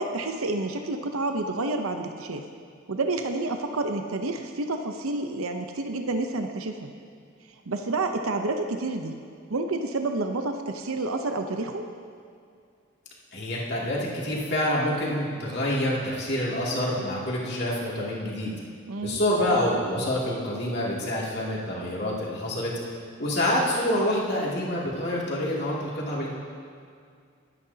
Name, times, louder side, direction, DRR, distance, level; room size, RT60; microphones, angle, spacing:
voice 1, 0.0-2.5 2.9-6.9 7.7-9.2 9.5-11.9 18.9-19.2, right 2 dB, 85° right, 5 dB, 0.7 m, -29 dB
voice 2, 13.3-18.5 19.0-22.7 23.2-26.3, left 1 dB, 50° left, -5 dB, 2.5 m, -27 dB
21.5 x 9.6 x 2.8 m, 2.3 s
head